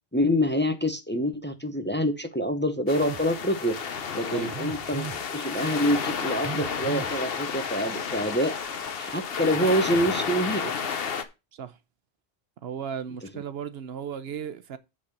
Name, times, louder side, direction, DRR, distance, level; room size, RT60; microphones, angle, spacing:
voice 1, 0.1-3.8 4.1-5.1 5.3-8.6 9.0-10.7, equal, 10° left, 0.8 m, -26 dB
sound 1, 2.9-11.2, left 6 dB, 65° left, 1.1 m, -31 dB
Telephone, 3.1-3.3 4.5-5.2 6.4-7.2, right 6 dB, 25° right, 0.6 m, -37 dB
voice 2, 12.6-14.8, right 7 dB, 75° right, 1.0 m, -35 dB
8.7 x 4.2 x 6.6 m
omnidirectional pair, 1.1 m